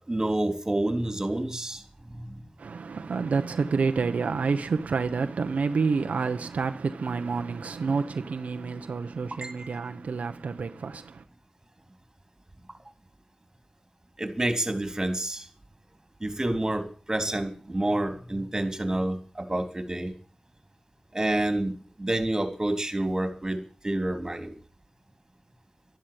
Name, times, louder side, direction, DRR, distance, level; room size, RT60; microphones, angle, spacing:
voice 1, 0.1-1.8 2.1-2.4 9.4-9.8 14.2-15.5 16.2-20.1 21.1-23.6 23.8-24.6, right 1 dB, 25° right, 3.6 m, -28 dB
voice 2, 2.6-11.2, right 4 dB, 90° right, 1.0 m, -28 dB
13.0 x 11.5 x 8.9 m
wide cardioid pair, 70°, 2 cm